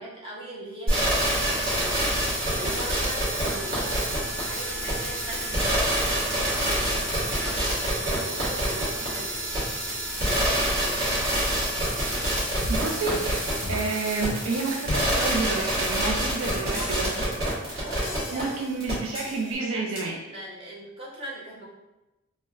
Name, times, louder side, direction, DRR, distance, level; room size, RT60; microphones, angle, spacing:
voice 1, 0.0-9.5 10.2-11.0 16.7-18.5 19.4-21.6, right 1 dB, 25° right, -6 dB, 0.6 m, -40 dB
sound 1, 0.9-18.4 18.8-18.9, right 1 dB, 45° right, 1.1 m, -26 dB
sound 2, 12.6-13.3 13.6-14.0 14.3-14.5 14.9-15.1 15.5-15.6 16.0-16.2 16.7-17.4 18.0-18.7 19.1-19.5 20.0-20.1, left 1 dB, 45° left, 0.4 m, -36 dB
voice 2, 12.7-17.3 18.3-20.2, right 3 dB, 70° right, 0 dB, 0.4 m, -30 dB
4.1 x 2.0 x 2.3 m, 1.0 s
head